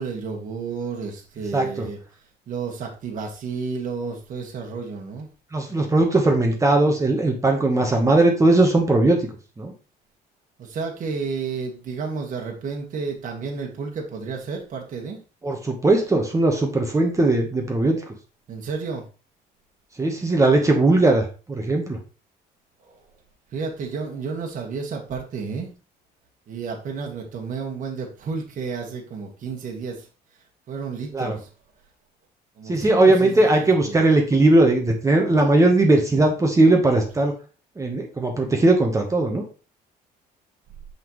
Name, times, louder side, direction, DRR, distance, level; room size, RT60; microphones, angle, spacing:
voice 1, 0.0-2.0 2.5-5.3 10.6-15.2 18.5-19.0 22.8-22.9 23.5-25.7 26.5-30.1 30.7-31.5 32.6-34.0, right 5 dB, 50° right, 1 dB, 1.6 m, -31 dB
voice 2, 1.5-1.9 5.5-9.2 9.6-9.7 15.4-18.1 20.0-22.0 31.1-31.4 32.7-37.3 37.8-39.4, right 2 dB, 20° right, 2 dB, 1.3 m, -19 dB
5.9 x 5.7 x 3.1 m, 0.34 s
cardioid pair, 110°, 17 cm